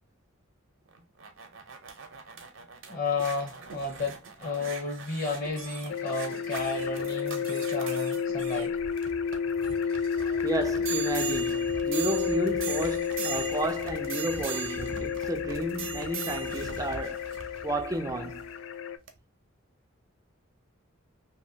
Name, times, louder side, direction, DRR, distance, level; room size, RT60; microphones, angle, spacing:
sound 1, 0.9-18.5 19.1-19.2, right 6 dB, 65° right, 0.6 m, -40 dB
voice 1, 2.9-8.8, left 3 dB, 45° left, 0.9 m, -32 dB
sound 2, 5.9-19.0, left 6 dB, 75° left, 0.3 m, -31 dB
voice 2, 10.4-17.3 17.6-18.4, right 1 dB, 15° right, 0.3 m, -32 dB
2.9 x 2.3 x 2.7 m
head